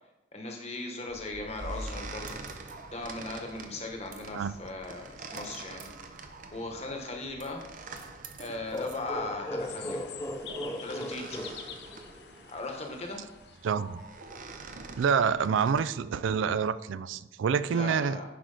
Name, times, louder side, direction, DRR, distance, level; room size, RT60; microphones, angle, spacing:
voice 1, 0.3-2.4 2.9-5.9 6.5-7.6 8.4-10.2 10.8-11.5 12.5-13.2 17.7-18.2, left 2 dB, 35° left, 2 dB, 1.2 m, -38 dB
sound 1, 1.1-15.9, right 3 dB, 40° right, 0.6 m, -45 dB
sound 2, 8.7-12.4, left 1 dB, 15° left, 0.4 m, -37 dB
sound 3, 9.6-14.1, left 8 dB, 55° left, 0.6 m, -47 dB
voice 2, 13.6-14.0 15.0-18.2, right 6 dB, 80° right, 15 dB, 0.3 m, -27 dB
10.5 x 4.9 x 3.9 m, 0.97 s
head